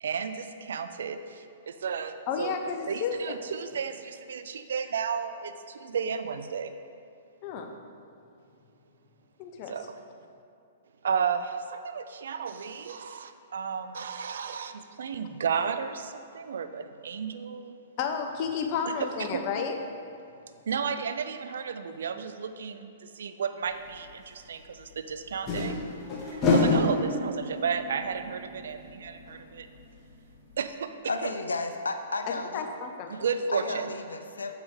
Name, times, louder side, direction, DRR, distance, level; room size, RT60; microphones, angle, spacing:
voice 1, 0.0-2.6 2.9-6.7 9.7-9.8 11.0-17.7 18.9-19.4 20.7-25.8 26.2-29.7 30.6-31.3 33.1-33.9, right 6 dB, 70° right, 10 dB, 0.5 m, -33 dB
voice 2, 2.3-3.4 7.4-7.7 9.4-9.7 18.0-19.8 32.2-33.1, left 6 dB, 40° left, 5 dB, 0.9 m, -32 dB
sound 1, 23.9-24.0 25.3-29.8 30.1-30.2 30.5-30.6, left 2 dB, 25° left, 1.7 m, -28 dB
voice 3, 31.1-32.7 33.1-33.2 33.5-34.5, left 3 dB, 90° left, 7 dB, 0.6 m, -33 dB
7.7 x 7.1 x 3.8 m, 2.5 s
hypercardioid pair, 120°, 0 cm